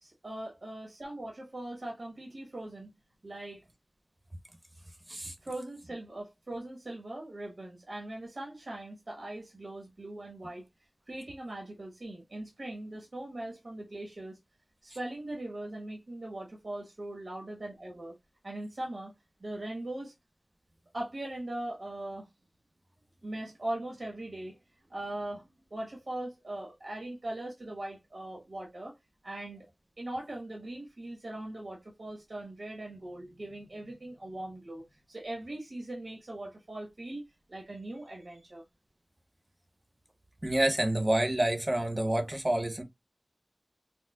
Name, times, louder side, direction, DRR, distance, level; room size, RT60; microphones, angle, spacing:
voice 1, 0.0-2.9 3.2-3.6 5.4-10.6 11.1-14.4 14.8-18.1 18.4-19.1 19.4-20.1 20.9-22.3 23.2-24.6 24.9-25.4 25.7-28.9 29.2-29.7 30.0-38.6, right 1 dB, 75° right, 1.2 m, -40 dB
voice 2, 40.4-42.8, right 1 dB, 30° right, 1.0 m, -28 dB
4.4 x 2.3 x 2.3 m
wide cardioid pair, 40°, 0 cm